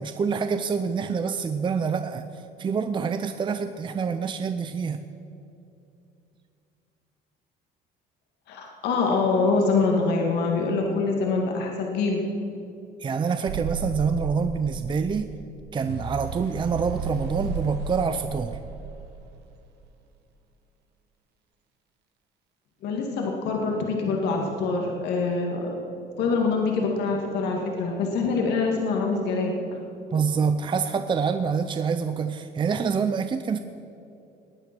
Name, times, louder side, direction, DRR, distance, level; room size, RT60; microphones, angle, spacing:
voice 1, 0.0-5.1 13.0-15.3 15.7-18.6 30.1-33.6, right 5 dB, 30° right, 9 dB, 0.6 m, -26 dB
voice 2, 8.5-12.2 22.8-25.7 26.2-29.5, left 4 dB, 80° left, 0 dB, 2.0 m, -25 dB
sound 1, 13.5-19.5, right 4 dB, 80° right, 1.1 m, -34 dB
19.0 x 9.4 x 6.1 m, 2.8 s
cardioid pair, 110°, 17 cm